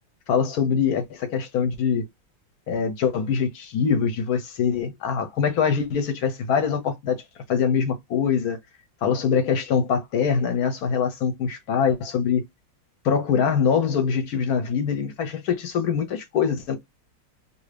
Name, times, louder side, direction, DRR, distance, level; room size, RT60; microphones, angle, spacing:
voice 1, 0.3-2.0 2.7-7.2 7.5-8.6 9.0-12.4 13.0-16.8, left 7 dB, 65° left, 1.1 m, -23 dB
2.7 x 2.7 x 3.2 m
omnidirectional pair, 2.0 m